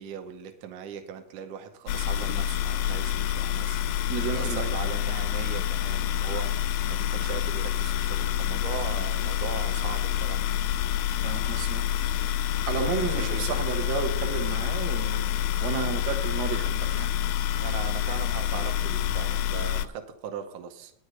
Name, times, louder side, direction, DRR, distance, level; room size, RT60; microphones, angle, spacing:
voice 1, 0.0-10.5 12.7-13.9 17.6-20.9, right 8 dB, 75° right, 6 dB, 2.3 m, -39 dB
sound 1, 1.9-19.9, left 10 dB, 85° left, 2.3 m, -27 dB
voice 2, 4.1-4.7 11.2-11.9 12.4-17.1, right 7 dB, 90° right, 4 dB, 3.0 m, -32 dB
9.7 x 6.6 x 7.8 m, 0.72 s
omnidirectional pair, 3.9 m